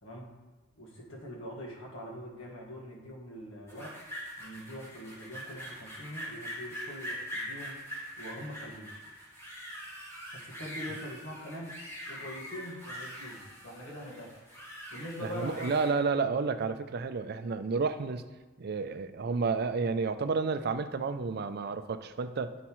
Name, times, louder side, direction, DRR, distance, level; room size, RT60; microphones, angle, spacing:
voice 1, 0.0-0.4 0.8-4.0 4.4-7.8 8.2-9.0 10.3-11.8 12.1-14.3 14.9-15.7, equal, 85° left, -3 dB, 1.7 m, -43 dB
sound 1, 3.7-15.9, equal, 15° left, 1.9 m, -43 dB
voice 2, 15.2-18.3 18.6-22.5, right 4 dB, 55° right, 10 dB, 0.4 m, -31 dB
9.1 x 7.3 x 3.1 m, 1.2 s
head